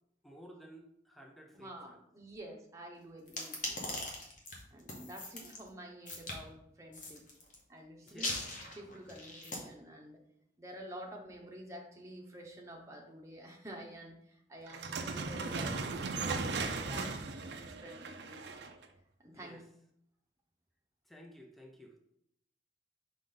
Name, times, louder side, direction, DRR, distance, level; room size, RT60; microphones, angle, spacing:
voice 1, 0.2-2.0 8.0-8.4 19.3-19.6 21.1-22.0, equal, ahead, 2 dB, 0.6 m, -54 dB
voice 2, 1.5-4.0 4.7-7.2 7.7-8.3 8.7-10.2 10.6-18.5 19.2-19.6, right 1 dB, 15° right, 0 dB, 0.9 m, -49 dB
sound 1, 3.3-5.6 6.1-6.4 6.9-7.5 8.1-9.6, left 2 dB, 45° left, 1.3 m, -40 dB
sound 2, 14.7-18.8, right 4 dB, 65° right, 0.6 m, -37 dB
5.1 x 5.1 x 3.9 m, 0.75 s
head